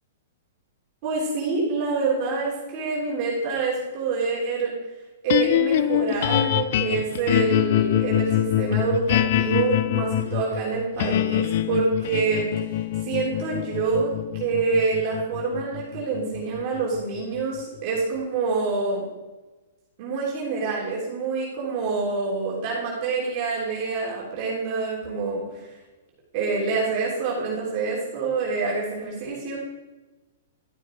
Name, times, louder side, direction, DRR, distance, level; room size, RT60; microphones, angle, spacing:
voice 1, 1.0-4.7 5.2-12.5 13.0-19.0 20.0-25.4 26.3-29.6, right 4 dB, 45° right, -5 dB, 3.2 m, -26 dB
sound 1, 5.3-17.6, left 12 dB, 60° left, 0.5 m, -25 dB
12.0 x 6.5 x 4.6 m, 1.1 s
hypercardioid pair, 135°, 0 cm